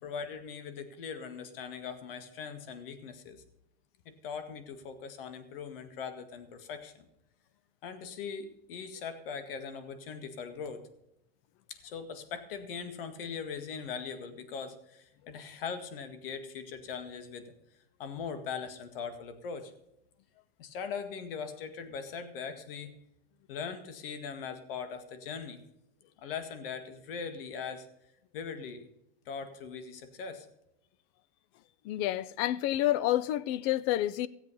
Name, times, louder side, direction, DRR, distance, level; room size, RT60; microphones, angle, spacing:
voice 1, 0.0-3.4 4.1-7.1 7.8-10.8 11.7-17.4 18.0-19.7 20.6-22.9 23.5-25.6 26.2-27.9 28.3-28.9 29.3-30.5, left 6 dB, 65° left, 2.0 m, -40 dB
voice 2, 31.8-34.3, left 14 dB, 35° left, 0.5 m, -29 dB
17.0 x 8.1 x 5.4 m
supercardioid pair, 155°, 30 cm